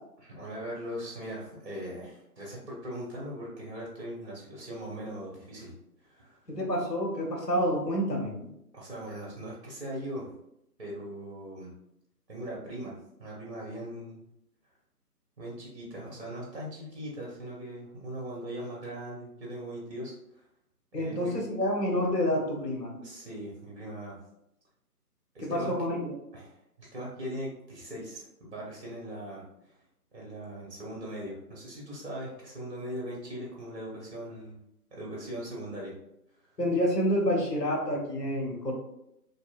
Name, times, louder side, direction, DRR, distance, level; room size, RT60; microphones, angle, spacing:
voice 1, 0.2-5.7 6.0-6.4 8.7-10.3 10.8-11.7 12.3-14.2 15.4-20.4 21.0-21.4 23.0-24.2 25.3-25.7 26.3-29.7 30.1-34.6 34.9-35.9, equal, 45° right, -4 dB, 0.9 m, -40 dB
voice 2, 6.5-8.4 20.9-22.9 25.4-26.2 36.6-38.7, equal, 85° left, 0 dB, 1.1 m, -28 dB
2.8 x 2.7 x 2.4 m, 0.80 s
figure-of-eight pair, 145°, 48 cm